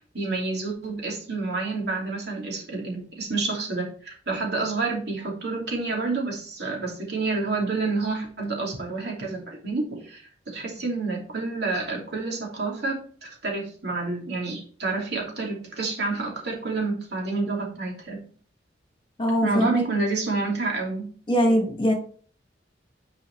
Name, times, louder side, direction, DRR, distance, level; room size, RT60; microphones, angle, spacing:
voice 1, 0.0-18.2 19.4-21.1, right 3 dB, 60° right, -1 dB, 2.7 m, -29 dB
voice 2, 19.2-19.8 21.3-21.9, equal, 25° left, 1 dB, 2.1 m, -22 dB
10.0 x 4.9 x 3.2 m, 0.43 s
head